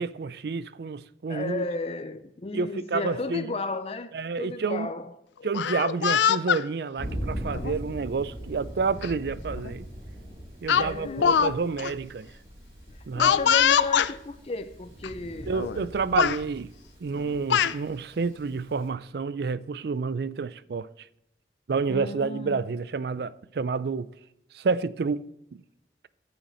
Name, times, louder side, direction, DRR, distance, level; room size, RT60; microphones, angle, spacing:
voice 1, 0.0-1.7 2.5-3.5 4.1-4.9 5.4-9.9 10.6-12.3 13.1-13.4 15.5-16.7 17.0-21.1 21.7-24.1 24.5-25.6, right 4 dB, 65° right, 0.4 m, -29 dB
voice 2, 1.3-4.1 4.4-5.1 10.7-11.5 12.9-15.6 21.9-22.6, left 3 dB, 35° left, 0.5 m, -34 dB
Speech, 5.4-6.6 7.5-7.8 9.0-9.1 9.5-9.7 10.7-11.5 11.8-11.9 13.2-14.1 15.0-15.1 15.5-15.9 16.2-16.4 17.2-17.8, left 8 dB, 90° left, 0.4 m, -23 dB
Thunder, 7.0-18.9, equal, 35° right, 3.7 m, -40 dB
12.5 x 5.7 x 4.3 m
head